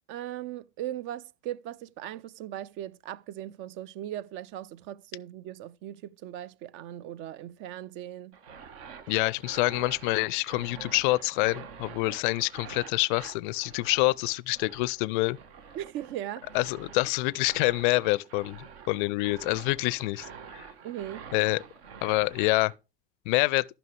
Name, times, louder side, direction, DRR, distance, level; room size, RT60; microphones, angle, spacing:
voice 1, 0.1-8.4 15.7-16.5 20.8-21.2, right 12 dB, 35° right, 0.4 m, -38 dB
sound 1, 8.3-22.7, right 6 dB, 60° right, 1.4 m, -47 dB
voice 2, 9.1-15.4 16.5-20.3 20.5-20.7 21.3-21.6 22.0-22.7 23.3-23.7, left 22 dB, 50° left, 0.4 m, -26 dB
14.5 x 5.9 x 3.3 m
figure-of-eight pair, 80°, 34 cm